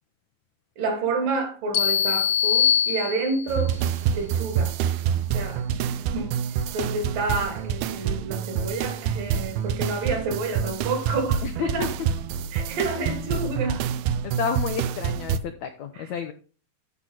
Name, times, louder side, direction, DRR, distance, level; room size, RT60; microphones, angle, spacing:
voice 1, 0.8-3.8 4.1-4.7 5.3-6.4 6.7-11.9 12.5-13.9 15.9-16.1, right 3 dB, 65° right, 4.1 m, -29 dB
sound 1, 1.7-3.6, left 9 dB, 60° left, 2.0 m, -23 dB
sound 2, 3.5-15.4, right 8 dB, 80° right, 2.6 m, -27 dB
voice 2, 11.4-11.9 14.2-16.3, left 7 dB, 75° left, 1.7 m, -30 dB
13.0 x 6.1 x 4.0 m
omnidirectional pair, 4.4 m